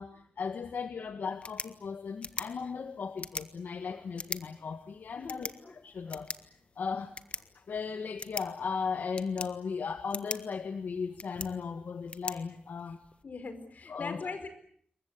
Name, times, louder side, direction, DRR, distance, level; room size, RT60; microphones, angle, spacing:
voice 1, 0.0-5.5 5.8-7.1 7.5-13.0 13.9-14.2, left 5 dB, 80° left, 1.6 m, -37 dB
sound 1, 1.2-13.2, left 4 dB, 40° left, 1.4 m, -44 dB
voice 2, 5.2-5.5 13.2-14.5, left 4 dB, 60° left, 5.0 m, -41 dB
28.0 x 23.0 x 8.2 m
wide cardioid pair, 135°, 3 cm